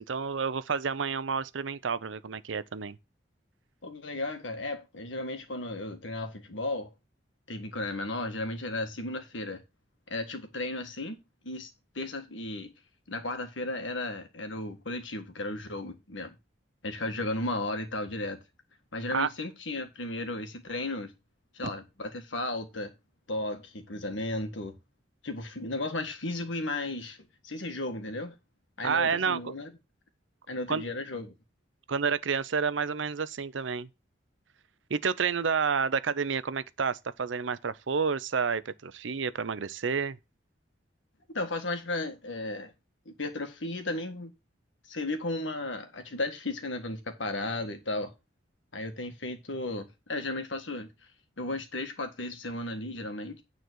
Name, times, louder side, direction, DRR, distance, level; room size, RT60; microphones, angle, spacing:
voice 1, 0.0-3.0 19.1-19.3 21.6-21.7 28.8-29.5 30.7-30.8 31.9-33.9 34.9-40.2, right 5 dB, 85° right, 0.6 m, -29 dB
voice 2, 3.8-6.9 7.5-9.6 10.1-11.2 11.4-11.7 12.0-12.7 13.1-16.4 16.8-18.4 18.9-21.1 21.5-22.9 23.3-24.8 25.2-27.2 27.4-28.4 28.8-29.7 30.5-31.3 41.3-42.7 43.1-44.3 44.9-48.1 48.7-50.9 51.4-53.4, left 2 dB, 85° left, 1.7 m, -34 dB
9.4 x 4.1 x 6.2 m
head